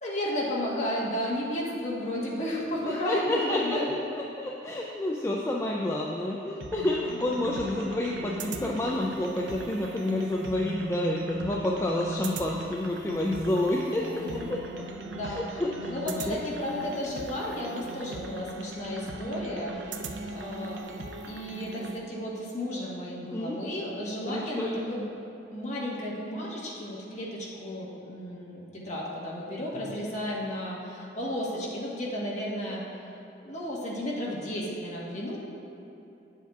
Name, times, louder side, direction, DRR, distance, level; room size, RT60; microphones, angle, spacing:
voice 1, 0.0-3.9 7.0-7.3 14.0-14.4 15.0-15.5 15.9-20.8 21.2-25.0 25.5-32.8 33.4-35.4, left 1 dB, 40° left, -5 dB, 1.2 m, -33 dB
voice 2, 2.9-3.8 4.1-14.2 14.5-14.6 15.2-16.4 23.3-23.6 24.2-24.8, left 1 dB, 15° left, -3 dB, 0.3 m, -29 dB
sound 1, 6.6-22.0, right 2 dB, 80° right, 0.5 m, -38 dB
9.2 x 7.1 x 2.3 m, 2.8 s
head